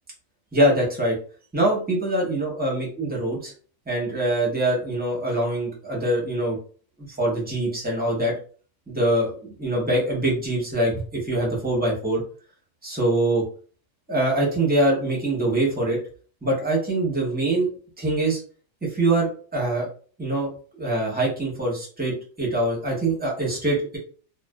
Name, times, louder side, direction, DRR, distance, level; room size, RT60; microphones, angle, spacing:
voice 1, 0.5-1.1 1.5-3.5 3.9-6.6 7.0-8.3 8.9-12.2 12.8-13.4 14.1-16.0 16.4-17.7 18.0-18.4 18.8-19.9 20.2-20.5 20.8-24.0, right 1 dB, 10° right, -3 dB, 0.6 m, -24 dB
2.5 x 2.3 x 2.2 m, 0.42 s
omnidirectional pair, 1.4 m